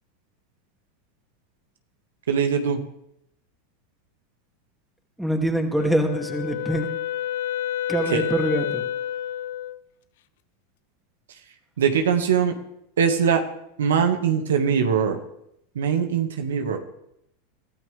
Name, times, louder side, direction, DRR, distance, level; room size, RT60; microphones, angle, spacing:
voice 1, 2.3-2.8 8.1-8.2 11.8-12.5 13.0-13.4 13.8-15.2 15.8-16.8, right 7 dB, 85° right, 5 dB, 1.9 m, -21 dB
voice 2, 5.2-6.9 7.9-8.8, equal, ahead, 3 dB, 2.6 m, -24 dB
Wind instrument woodwind instrument, 5.8-9.8, left 11 dB, 75° left, 0.8 m, -29 dB
23.5 x 12.5 x 3.5 m, 0.78 s
hypercardioid pair, 110°, 0 cm